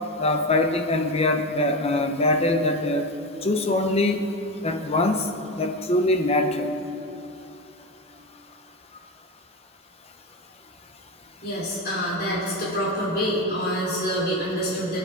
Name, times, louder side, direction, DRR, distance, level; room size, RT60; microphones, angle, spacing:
voice 1, 0.2-3.1 3.4-4.3 4.6-6.7, left 2 dB, 30° left, 5 dB, 0.9 m, -23 dB
voice 2, 11.4-15.0, equal, 50° left, -7 dB, 3.6 m, -26 dB
24.5 x 9.8 x 3.6 m, 2.9 s
head